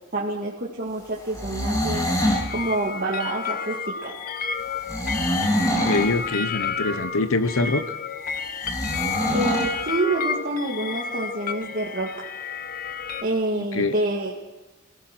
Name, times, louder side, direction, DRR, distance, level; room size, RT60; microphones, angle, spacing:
voice 1, 0.1-2.1 2.5-4.2 9.3-12.1 13.2-14.4, right 2 dB, 45° right, -3 dB, 2.0 m, -27 dB
sound 1, 1.3-2.5 4.9-6.1 8.6-9.7, equal, 15° left, 3.2 m, -24 dB
sound 2, 2.2-13.2, left 5 dB, 45° left, 1.1 m, -31 dB
voice 2, 5.9-7.8 13.6-13.9, left 3 dB, 80° left, 12 dB, 1.1 m, -24 dB
24.5 x 17.5 x 6.1 m, 1.2 s
head